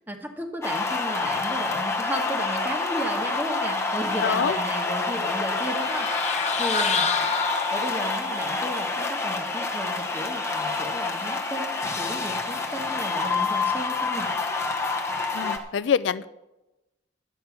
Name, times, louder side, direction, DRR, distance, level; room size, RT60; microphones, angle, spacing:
voice 1, 0.1-6.2 6.6-7.1 7.7-14.3, right 1 dB, 10° right, 4 dB, 1.4 m, -34 dB
sound 1, 0.6-15.6, left 3 dB, 15° left, 1.1 m, -27 dB
voice 2, 4.2-4.6 15.3-16.3, left 7 dB, 75° left, 16 dB, 0.4 m, -25 dB
sound 2, 5.6-8.3, left 5 dB, 40° left, 1.0 m, -28 dB
12.0 x 8.6 x 5.9 m, 1.0 s
head